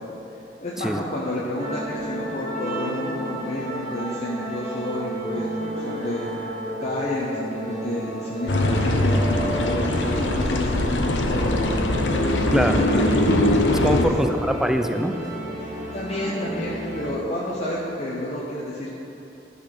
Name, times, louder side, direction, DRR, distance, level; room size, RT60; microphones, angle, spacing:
voice 1, 0.6-11.8 12.1-12.2 12.5-13.2 13.8-14.1 15.6-18.9, left 1 dB, 35° left, -4 dB, 0.8 m, -30 dB
sound 1, 1.6-17.1, right 1 dB, 45° right, 1.9 m, -32 dB
sound 2, 8.5-14.0, left 1 dB, 80° left, 0.7 m, -21 dB
voice 2, 12.5-13.0 13.8-15.2, equal, ahead, 7 dB, 0.3 m, -23 dB
11.5 x 4.1 x 6.0 m, 3.0 s
head